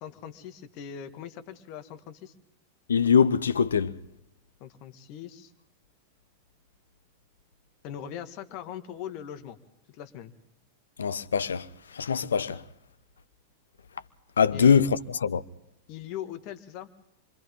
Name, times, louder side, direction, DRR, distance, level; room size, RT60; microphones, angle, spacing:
voice 1, 0.0-2.3 4.6-5.5 7.8-9.6 9.9-10.3 14.5-14.8 15.9-16.9, left 9 dB, 45° left, 1.9 m, -40 dB
voice 2, 2.9-4.0 11.0-11.7 11.9-12.6 14.4-15.4, left 6 dB, 75° left, 0.9 m, -23 dB
29.0 x 24.5 x 3.8 m
figure-of-eight pair, 95°, 0 cm